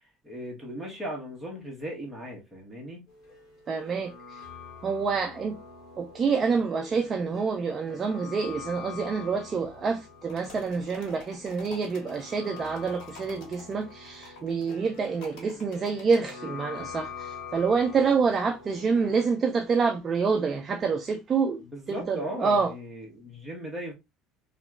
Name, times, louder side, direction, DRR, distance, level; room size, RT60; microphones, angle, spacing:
voice 1, 0.2-3.0 21.6-23.9, equal, 10° right, 1.1 m, -37 dB
sound 1, 3.1-19.3, left 5 dB, 40° left, 1.7 m, -45 dB
voice 2, 3.7-4.4 4.8-5.6 6.0-21.6 21.9-22.7, right 5 dB, 25° right, 0.3 m, -27 dB
sound 2, 10.3-16.4, left 3 dB, 55° left, 1.8 m, -50 dB
3.0 x 2.8 x 2.3 m
cardioid pair, 150°, 0 cm